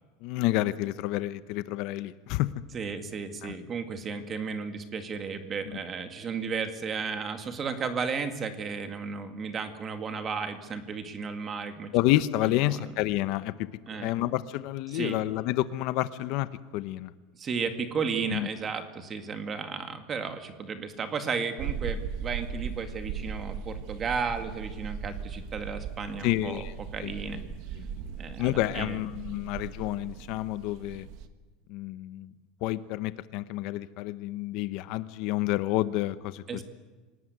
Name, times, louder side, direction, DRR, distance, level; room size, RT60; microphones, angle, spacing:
voice 1, 0.2-2.5 3.4-3.5 11.9-13.5 14.0-17.1 18.3-18.5 26.2-26.7 27.0-27.1 28.4-31.1 31.7-32.3 32.6-36.6, left 15 dB, 45° left, 14 dB, 0.8 m, -29 dB
voice 2, 2.7-11.9 12.4-12.8 13.9-14.1 14.9-15.2 17.3-27.4 28.2-29.0 36.5-36.6, right 5 dB, 20° right, 8 dB, 2.0 m, -34 dB
sound 1, 21.6-31.3, right 7 dB, 50° right, 1.6 m, -38 dB
27.0 x 19.0 x 9.5 m, 1.3 s
cardioid pair, 180°, 0 cm